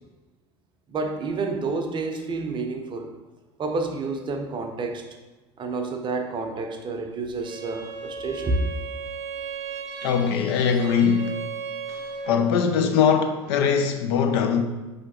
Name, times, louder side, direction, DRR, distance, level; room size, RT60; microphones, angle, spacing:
voice 1, 0.9-3.1 3.6-5.1 5.6-8.6, right 3 dB, 35° right, 0.6 m, -29 dB
Bowed string instrument, 7.4-12.6, right 5 dB, 80° right, 0.6 m, -36 dB
voice 2, 10.0-11.3 11.9-14.6, left 6 dB, 65° left, 0.5 m, -22 dB
5.0 x 3.2 x 2.9 m
hypercardioid pair, 75°, 15 cm